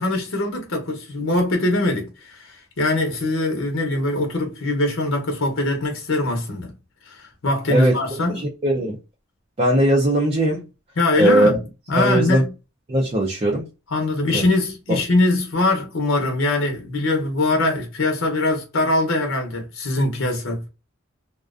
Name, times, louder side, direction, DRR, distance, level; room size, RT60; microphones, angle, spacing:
voice 1, 0.0-6.7 7.1-8.4 11.0-11.6 11.9-12.5 13.9-20.6, left 2 dB, 70° left, 0.7 m, -22 dB
voice 2, 8.3-9.0 9.6-10.6 11.2-11.5 12.0-12.4 12.9-13.7 14.3-14.4, right 1 dB, 30° right, 0.5 m, -19 dB
2.4 x 2.2 x 2.4 m
head